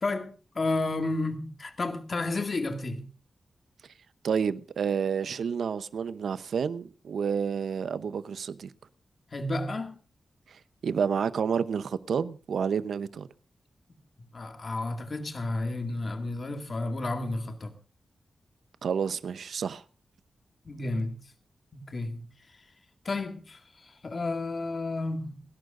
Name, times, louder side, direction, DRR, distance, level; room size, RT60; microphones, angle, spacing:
voice 1, 0.0-3.1 9.3-10.0 14.3-17.7 20.7-21.2 21.7-22.3 23.0-25.4, left 2 dB, 40° left, 2.1 m, -32 dB
voice 2, 4.2-8.7 10.5-13.3 18.8-19.8, right 6 dB, 85° right, 0.8 m, -30 dB
30.0 x 11.5 x 2.6 m
wide cardioid pair, 135°, 0 cm